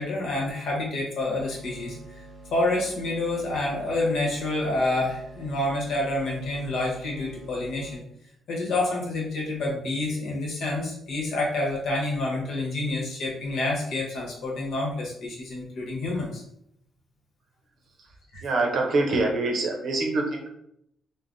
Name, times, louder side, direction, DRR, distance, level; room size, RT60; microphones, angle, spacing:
voice 1, 0.0-2.0 2.5-8.0 8.5-16.4 18.3-18.4, left 2 dB, 70° left, -2 dB, 1.0 m, -28 dB
sound 1, 1.4-7.9, right 2 dB, 25° right, 0.8 m, -47 dB
voice 2, 18.4-20.5, right 2 dB, 55° right, 1 dB, 0.6 m, -25 dB
3.2 x 2.1 x 2.6 m, 0.74 s
cardioid pair, 135°, 0 cm